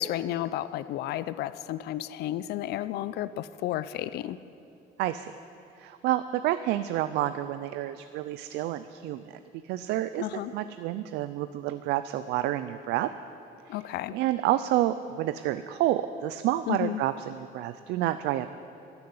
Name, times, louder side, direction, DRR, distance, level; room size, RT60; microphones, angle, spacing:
voice 1, 0.0-4.4 10.2-10.5 13.7-14.2 16.7-17.0, left 13 dB, 75° left, 15 dB, 0.5 m, -32 dB
voice 2, 5.0-5.3 5.8-9.3 9.7-10.3 10.5-13.1 14.1-18.5, right 13 dB, 85° right, 12 dB, 0.5 m, -29 dB
13.0 x 10.5 x 9.5 m, 2.7 s
cardioid pair, 110°, 17 cm